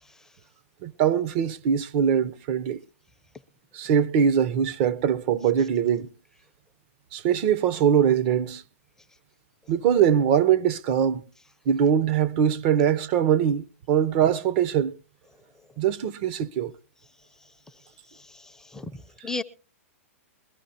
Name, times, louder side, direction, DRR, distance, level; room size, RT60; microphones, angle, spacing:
voice 1, 0.8-2.8 3.7-6.1 7.1-8.6 9.7-11.2 11.7-14.9 15.8-16.7, right 8 dB, 45° right, 0.7 m, -22 dB
voice 2, 18.1-19.4, left 2 dB, 5° left, 0.5 m, -36 dB
22.0 x 13.0 x 2.8 m
hypercardioid pair, 135°, 8 cm